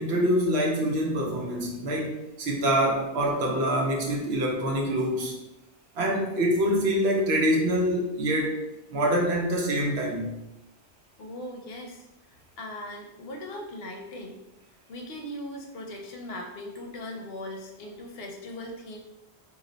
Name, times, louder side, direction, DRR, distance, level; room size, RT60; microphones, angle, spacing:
voice 1, 0.0-5.3 6.0-8.6 8.9-10.4, equal, 75° right, -1 dB, 0.9 m, -25 dB
voice 2, 11.2-14.4 14.9-19.0, left 1 dB, 70° left, 1 dB, 0.8 m, -39 dB
2.5 x 2.1 x 3.7 m, 0.94 s
omnidirectional pair, 1.1 m